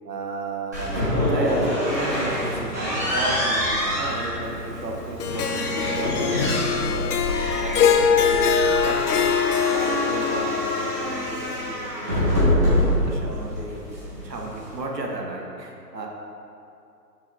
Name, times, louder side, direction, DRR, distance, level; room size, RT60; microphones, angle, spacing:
voice 1, 0.0-7.1 7.6-13.8 14.2-16.1, right 2 dB, 80° right, -1 dB, 1.3 m, -33 dB
sound 1, 0.7-14.8, equal, 10° right, 0.6 m, -26 dB
Harp, 5.2-11.6, left 7 dB, 65° left, 0.6 m, -23 dB
6.9 x 6.2 x 2.6 m, 2.6 s
figure-of-eight pair, 145°, 49 cm